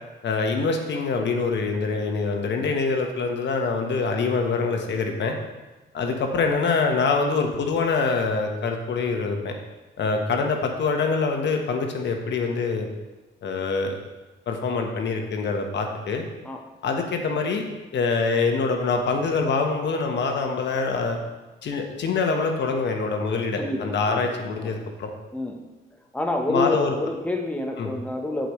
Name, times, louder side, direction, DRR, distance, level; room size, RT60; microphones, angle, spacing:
voice 1, 0.2-5.4 5.9-9.6 10.0-12.9 13.4-14.0 14.5-16.2 16.8-17.6 17.9-21.2 21.6-25.1 26.5-27.0 27.8-27.9, left 4 dB, 65° left, 3 dB, 1.3 m, -25 dB
voice 2, 23.6-24.2 24.6-24.7 25.3-25.6 26.1-28.5, left 2 dB, 5° left, 2 dB, 1.0 m, -28 dB
15.0 x 5.1 x 3.2 m, 1.1 s
cardioid pair, 90°, 20 cm